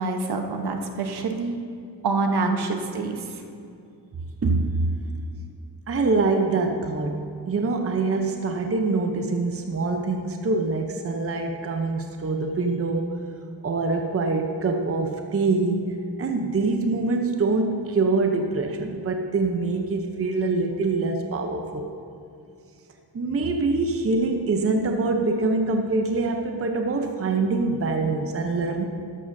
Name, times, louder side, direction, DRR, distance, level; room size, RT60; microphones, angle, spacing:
voice 1, 0.0-1.6 2.0-3.2, right 3 dB, 65° right, 4 dB, 1.1 m, -26 dB
voice 2, 4.4-4.8 5.9-13.1 13.6-21.9 23.1-28.8, right 3 dB, 35° right, 4 dB, 0.8 m, -24 dB
13.0 x 11.5 x 2.7 m, 2.5 s
wide cardioid pair, 120°, 42 cm